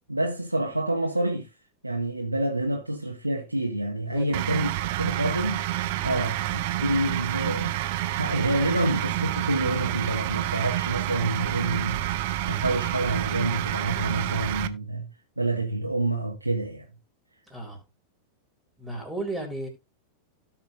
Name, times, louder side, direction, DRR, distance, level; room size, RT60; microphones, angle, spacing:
voice 1, 0.1-1.5 1.8-4.7 5.0-5.7 6.0-7.8 8.1-15.1 15.4-16.9, right 1 dB, 85° right, 1.3 m, -28 dB
voice 2, 4.1-4.4 17.5-17.8 18.8-19.7, right 2 dB, 5° right, 3.9 m, -35 dB
sound 1, 4.3-14.7, right 14 dB, 50° right, 0.7 m, -28 dB
17.0 x 5.8 x 2.5 m
figure-of-eight pair, 90°, 0 cm